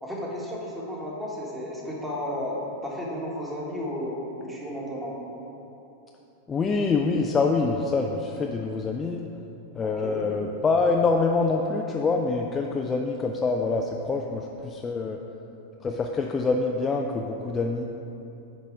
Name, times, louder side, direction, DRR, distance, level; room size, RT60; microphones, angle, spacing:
voice 1, 0.0-5.2 9.8-10.3, left 1 dB, 5° right, -4 dB, 1.5 m, -33 dB
voice 2, 6.5-9.2 9.7-15.2 15.8-17.8, left 4 dB, 20° left, 1 dB, 0.4 m, -25 dB
9.4 x 4.0 x 4.8 m, 3.0 s
figure-of-eight pair, 90°, 0 cm